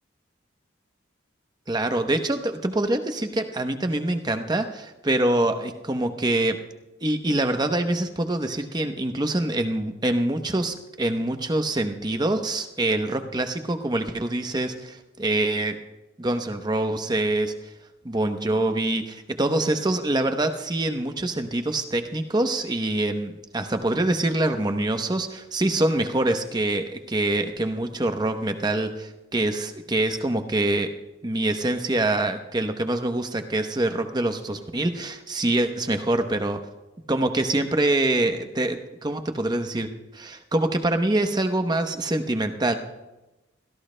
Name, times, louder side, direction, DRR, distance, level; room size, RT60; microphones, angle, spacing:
voice 1, 1.7-6.6 7.0-15.8 16.2-17.5 18.0-30.9 31.2-36.6 37.1-42.7, right 1 dB, 20° right, 7 dB, 0.8 m, -25 dB
25.5 x 17.0 x 2.2 m, 1.0 s
head